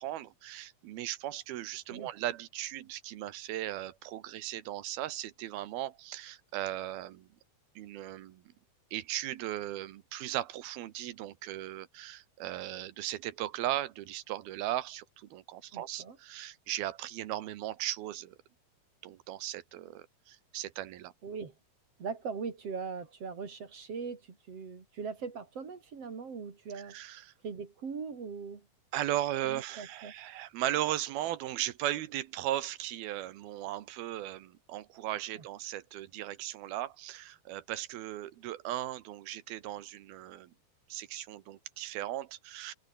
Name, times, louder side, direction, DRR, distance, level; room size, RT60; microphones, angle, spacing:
voice 1, 0.0-7.3 7.8-8.4 8.9-18.3 19.0-21.1 26.7-27.3 28.9-40.5 40.9-42.7, right 13 dB, 70° right, 3.0 m, -37 dB
voice 2, 15.7-16.2 21.2-21.5 22.0-27.0 27.4-28.7 29.4-30.1 35.4-35.5, right 5 dB, 40° right, 3.9 m, -40 dB
omnidirectional pair, 4.7 m